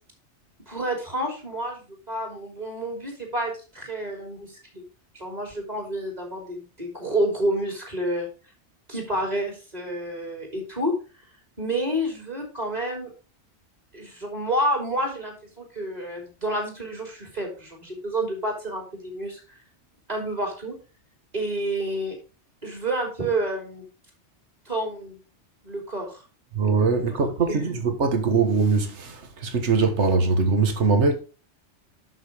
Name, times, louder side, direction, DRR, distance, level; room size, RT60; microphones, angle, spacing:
voice 1, 0.7-4.8 5.1-8.3 8.9-10.9 11.6-13.1 13.9-19.4 20.1-20.8 21.3-22.2 22.6-23.8 24.6-25.2 25.6-26.2 27.5-27.7, right 1 dB, 35° right, 3.1 m, -29 dB
voice 2, 26.5-31.2, right 4 dB, 75° right, 1.6 m, -22 dB
6.6 x 6.4 x 4.9 m
omnidirectional pair, 1.2 m